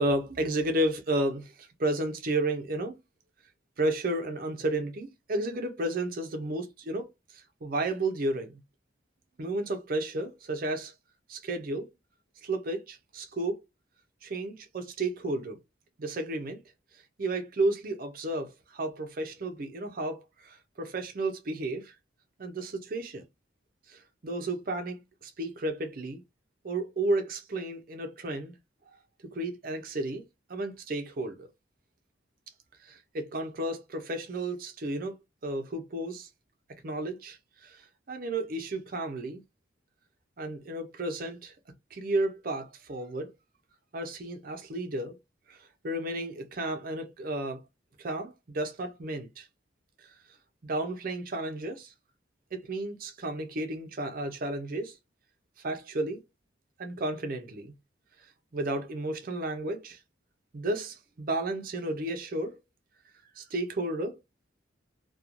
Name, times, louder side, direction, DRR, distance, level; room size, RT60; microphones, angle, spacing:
voice 1, 0.0-3.0 3.8-7.1 7.6-8.6 9.4-10.9 11.3-11.9 12.4-13.6 14.2-15.6 16.0-16.6 17.2-21.9 22.4-23.2 23.9-26.2 26.6-28.5 29.3-30.2 30.5-31.5 32.8-35.1 35.4-36.3 36.8-37.4 37.6-37.8 38.1-39.4 40.4-41.5 41.9-43.3 43.9-45.2 45.5-45.6 45.8-47.6 48.0-49.5 50.6-51.9 52.5-55.0 55.6-56.2 56.8-57.7 58.5-60.0 60.5-62.6 63.4-64.2, right 2 dB, 45° right, 0.5 m, -32 dB
2.9 x 2.2 x 2.4 m
head